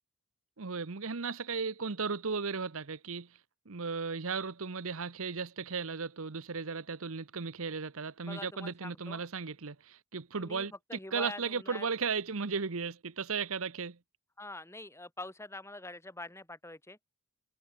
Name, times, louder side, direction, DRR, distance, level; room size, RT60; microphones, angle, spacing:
voice 1, 0.6-3.3 3.7-10.7 11.1-14.0, right 5 dB, 65° right, 1.0 m, -35 dB
voice 2, 8.2-9.2 10.4-11.9 14.4-17.0, left 2 dB, 10° left, 3.9 m, -45 dB
head